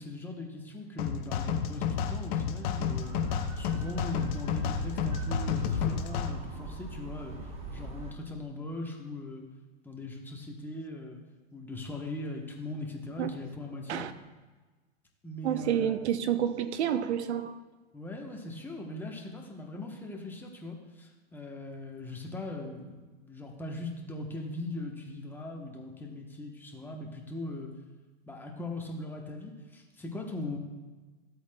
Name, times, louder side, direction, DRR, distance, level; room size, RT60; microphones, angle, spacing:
voice 1, 0.0-3.2 3.6-7.4 7.7-9.4 9.8-11.2 11.5-14.0 15.2-15.9 17.9-27.7 28.3-30.6, left 2 dB, 5° left, 0.9 m, -40 dB
sound 1, 1.0-6.3, left 7 dB, 50° left, 0.8 m, -31 dB
sound 2, 2.9-8.1, right 3 dB, 20° right, 1.0 m, -40 dB
voice 2, 15.4-17.6, right 9 dB, 80° right, 0.7 m, -29 dB
14.5 x 8.1 x 2.2 m
hypercardioid pair, 140°, 33 cm